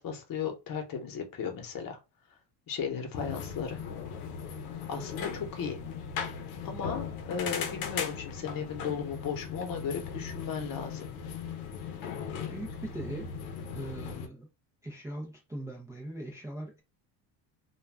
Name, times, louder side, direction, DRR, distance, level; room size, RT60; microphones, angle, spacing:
voice 1, 0.0-2.0 2.7-3.8 4.9-5.8 6.6-11.1, left 6 dB, 45° left, 0.9 m, -35 dB
sound 1, 3.2-14.3, left 6 dB, 90° left, 0.7 m, -38 dB
voice 2, 12.5-13.3 13.6-14.5 14.8-16.8, right 1 dB, 5° right, 0.4 m, -40 dB
2.3 x 2.2 x 3.3 m
cardioid pair, 110°, 47 cm